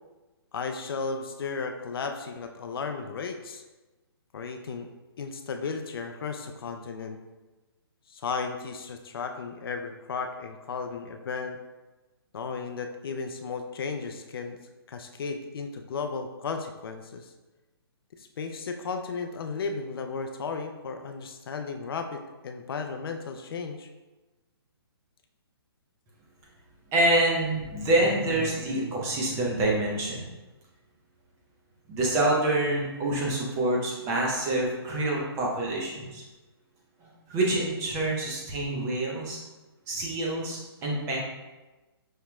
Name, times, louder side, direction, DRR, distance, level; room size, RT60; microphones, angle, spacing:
voice 1, 0.5-3.6 4.3-4.9 5.2-7.2 8.1-11.6 12.3-14.6 14.9-17.3 18.2-23.9, left 5 dB, 65° left, 5 dB, 0.4 m, -34 dB
voice 2, 26.9-30.3 31.9-36.2 37.0-39.4 39.9-41.2, right 1 dB, 20° right, -3 dB, 0.8 m, -26 dB
5.4 x 2.8 x 2.3 m, 1.1 s
hypercardioid pair, 145°, 13 cm